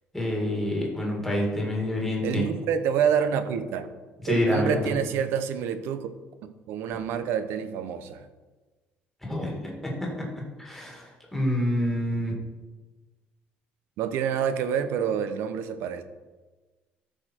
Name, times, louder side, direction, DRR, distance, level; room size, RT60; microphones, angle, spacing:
voice 1, 0.1-2.5 4.2-5.0 9.2-10.2 10.6-12.3, left 1 dB, 5° left, -2 dB, 1.9 m, -27 dB
voice 2, 2.2-3.9 4.3-6.1 6.7-8.2 14.0-16.0, right 8 dB, 75° right, 10 dB, 0.8 m, -27 dB
13.0 x 5.0 x 4.4 m, 1.3 s
cardioid pair, 180°, 4 cm